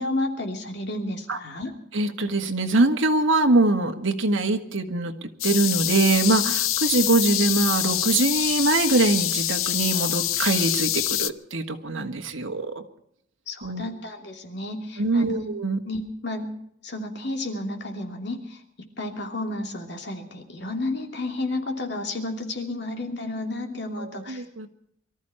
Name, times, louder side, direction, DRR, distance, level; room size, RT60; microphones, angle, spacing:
voice 1, 0.0-1.7 13.5-15.4 15.9-16.5 16.8-18.6 19.0-24.7, left 2 dB, 55° left, 3 dB, 2.9 m, -31 dB
voice 2, 1.9-12.7 13.6-13.9 15.0-15.8 24.0-24.7, right 2 dB, 75° right, 4 dB, 1.8 m, -23 dB
sound 1, 5.4-11.3, left 13 dB, 90° left, 0.7 m, -25 dB
23.5 x 14.0 x 4.5 m, 0.70 s
head